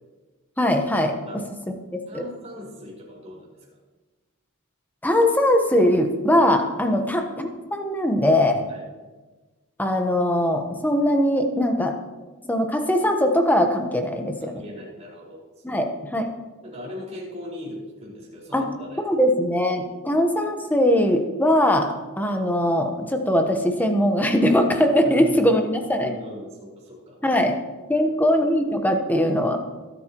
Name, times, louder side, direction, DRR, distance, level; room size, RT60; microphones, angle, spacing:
voice 1, 0.6-1.1 1.9-2.2 5.0-8.6 9.8-11.9 12.4-14.5 15.6-16.3 18.5-18.7 19.0-26.1 27.2-27.5 27.9-29.6, left 1 dB, 10° left, 4 dB, 1.1 m, -21 dB
voice 2, 2.1-3.5 6.9-7.0 8.7-8.9 14.4-15.4 15.7-15.8 16.6-19.0 25.0-25.3 26.0-27.2 27.9-28.1, left 1 dB, 30° right, -4 dB, 4.8 m, -39 dB
23.0 x 8.4 x 3.0 m, 1.3 s
head